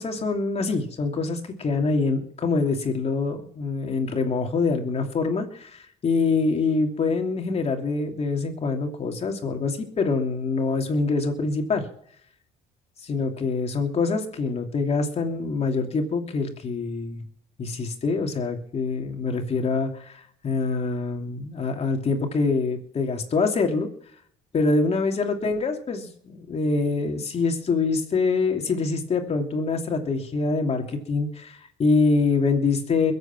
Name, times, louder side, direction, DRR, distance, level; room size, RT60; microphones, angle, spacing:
voice 1, 0.0-11.9 13.0-17.2 17.6-23.9 24.5-33.1, left 4 dB, 40° left, 3 dB, 3.0 m, -25 dB
21.5 x 8.2 x 6.2 m, 0.67 s
cardioid pair, 110°, 17 cm